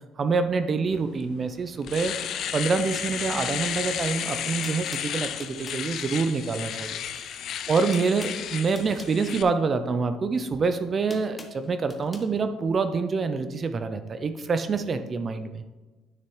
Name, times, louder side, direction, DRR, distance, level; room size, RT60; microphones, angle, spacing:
voice 1, 0.2-2.1 2.5-7.4 7.7-15.7, right 4 dB, 30° right, 9 dB, 0.4 m, -26 dB
Domestic sounds home sounds, 1.2-1.3 1.7-9.4, left 9 dB, 50° left, 0.5 m, -33 dB
sound 1, 4.1-4.2 4.6-5.9 7.1-7.4 7.6-9.2 10.3-12.3, left 2 dB, 15° left, 0.9 m, -45 dB
9.6 x 6.7 x 3.1 m, 1.3 s
cardioid pair, 150°, 0 cm